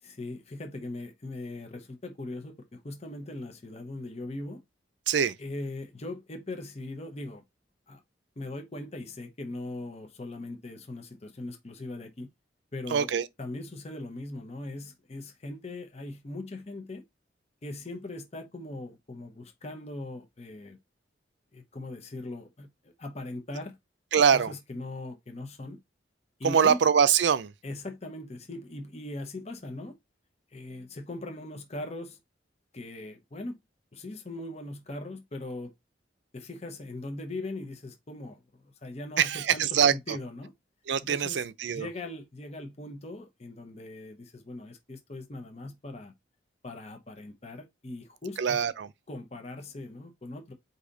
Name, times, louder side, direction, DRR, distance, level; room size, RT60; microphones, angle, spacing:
voice 1, 0.0-4.6 5.4-7.4 7.9-8.0 8.4-12.3 12.7-13.1 13.4-17.0 17.6-20.8 21.5-23.8 24.3-25.8 26.4-26.8 27.6-29.9 30.5-32.2 32.7-33.6 33.9-35.7 36.3-40.5 41.1-41.5 41.7-46.1 46.6-48.6 49.1-50.5, left 2 dB, 35° left, 0.8 m, -40 dB
voice 2, 12.9-13.3 24.1-24.5 26.4-27.5 39.2-40.2 40.9-41.9 48.4-48.9, right 7 dB, 75° right, 0.4 m, -24 dB
4.9 x 2.7 x 3.8 m
head